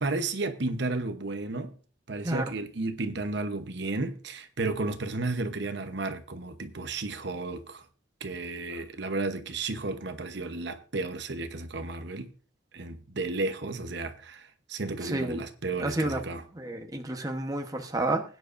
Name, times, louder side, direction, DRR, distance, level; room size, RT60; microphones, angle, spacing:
voice 1, 0.0-1.7 2.1-7.8 8.2-12.3 12.7-16.4, right 3 dB, 60° right, 1.0 m, -33 dB
voice 2, 15.0-15.4 15.8-16.2 16.5-18.2, right 2 dB, 20° right, 1.1 m, -30 dB
20.5 x 9.4 x 2.6 m
head